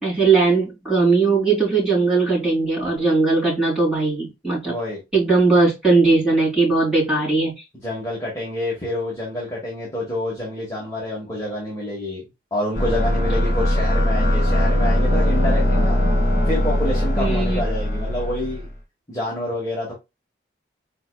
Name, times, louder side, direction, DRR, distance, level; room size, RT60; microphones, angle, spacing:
voice 1, 0.0-4.7 5.1-7.5 17.2-17.6, right 3 dB, 5° right, 2.8 m, -19 dB
voice 2, 4.6-5.0 7.8-12.2 12.5-16.0 16.4-18.7 19.1-19.9, left 1 dB, 15° left, 1.3 m, -27 dB
sound 1, 12.7-18.7, equal, 45° left, 2.3 m, -20 dB
4.7 x 3.9 x 2.3 m
head